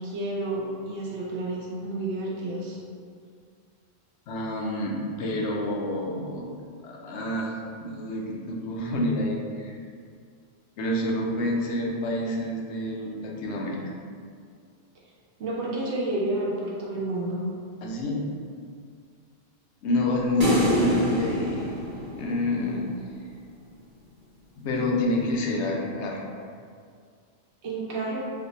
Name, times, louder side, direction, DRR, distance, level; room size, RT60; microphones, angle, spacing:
voice 1, 0.0-2.8 15.4-17.5 27.6-28.2, right 2 dB, 85° right, -5 dB, 1.0 m, -30 dB
voice 2, 4.3-6.5 6.8-7.5 7.8-9.8 10.8-13.8 17.8-18.2 19.8-21.7 22.2-22.8 24.6-26.2, left 1 dB, 85° left, -1 dB, 0.9 m, -28 dB
sound 1, 20.4-22.8, equal, 50° right, 0.9 m, -25 dB
3.2 x 2.1 x 4.0 m, 2.2 s
omnidirectional pair, 1.1 m